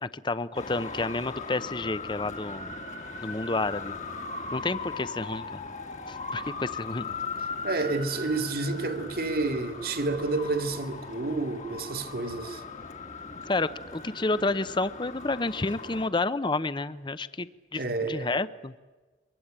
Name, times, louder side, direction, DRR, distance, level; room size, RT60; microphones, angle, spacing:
voice 1, 0.0-2.7 3.2-3.9 4.5-5.6 6.1-7.1 13.5-17.8 18.1-18.7, left 2 dB, 25° left, 0.7 m, -30 dB
Traffic noise roadway noise, 0.5-16.1, left 4 dB, 40° left, 1.7 m, -38 dB
voice 2, 7.6-12.6 17.8-18.4, right 3 dB, 55° right, 2.2 m, -30 dB
23.5 x 23.0 x 8.8 m
head